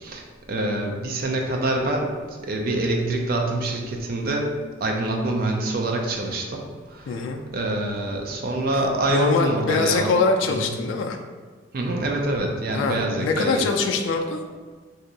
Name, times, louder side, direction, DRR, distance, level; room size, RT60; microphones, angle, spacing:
voice 1, 0.0-7.2 7.5-10.1 10.5-10.7 11.7-13.7, right 1 dB, 45° right, 2 dB, 0.4 m, -26 dB
voice 2, 7.1-7.4 9.1-11.2 12.7-14.4, left 3 dB, 70° left, 3 dB, 0.3 m, -23 dB
2.7 x 2.5 x 4.0 m, 1.5 s
head